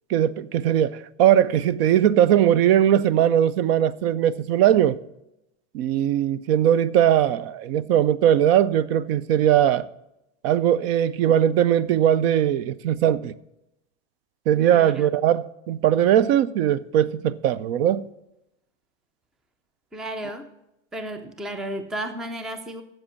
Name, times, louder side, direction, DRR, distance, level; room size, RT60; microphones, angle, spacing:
voice 1, 0.1-5.0 5.7-9.9 10.4-13.3 14.5-18.1, right 10 dB, 55° right, 0.5 m, -20 dB
voice 2, 14.7-15.1 19.9-20.5 20.9-22.8, right 1 dB, ahead, 0.3 m, -33 dB
7.8 x 7.5 x 7.0 m
supercardioid pair, 135°, 36 cm